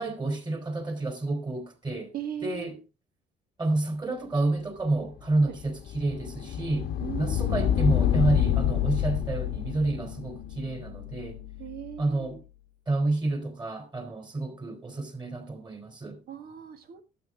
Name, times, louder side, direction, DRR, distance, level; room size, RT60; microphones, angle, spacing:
voice 1, 0.0-2.1 2.4-2.7 3.6-6.9 7.2-11.4 12.0-12.4 12.9-16.2, right 2 dB, 25° right, 3.2 m, -29 dB
voice 2, 2.1-2.8 5.4-5.6 7.0-7.5 10.0-10.1 11.6-12.4 16.3-17.0, right 10 dB, 65° right, 1.7 m, -39 dB
sound 1, 5.2-12.1, left 10 dB, 80° left, 1.2 m, -28 dB
12.0 x 8.5 x 3.5 m
cardioid pair, 110°, 17 cm